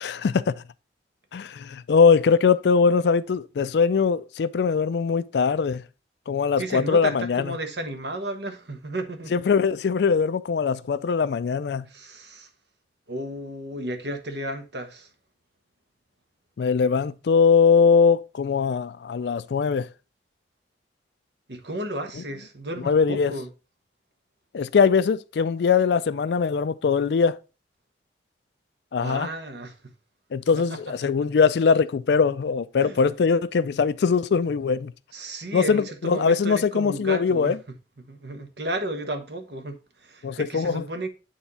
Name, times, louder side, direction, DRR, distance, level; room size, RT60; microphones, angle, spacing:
voice 1, 0.0-0.5 1.3-5.8 6.3-7.5 9.3-11.9 16.6-19.9 22.8-23.3 24.5-27.4 28.9-29.3 30.3-34.9 35.5-37.6 40.2-40.8, left 5 dB, 65° left, 0.4 m, -21 dB
voice 2, 6.6-9.4 11.9-12.5 13.1-15.1 21.5-23.5 29.0-29.7 32.8-33.0 35.1-37.5 38.1-41.1, right 1 dB, 70° right, 1.2 m, -33 dB
9.1 x 3.5 x 4.1 m
head